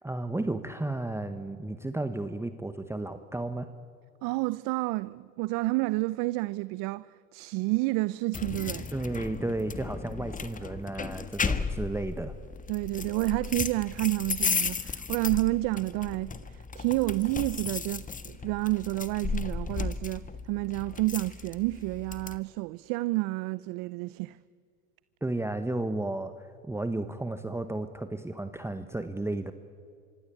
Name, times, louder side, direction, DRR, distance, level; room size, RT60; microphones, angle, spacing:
voice 1, 0.0-3.7 8.9-12.3 25.2-29.5, right 2 dB, 5° right, 1.2 m, -33 dB
voice 2, 4.2-8.9 12.7-24.4, right 21 dB, 60° right, 0.7 m, -30 dB
sound 1, 8.3-22.4, left 5 dB, 20° left, 1.5 m, -35 dB
26.0 x 23.5 x 8.5 m
hypercardioid pair, 95°, 40 cm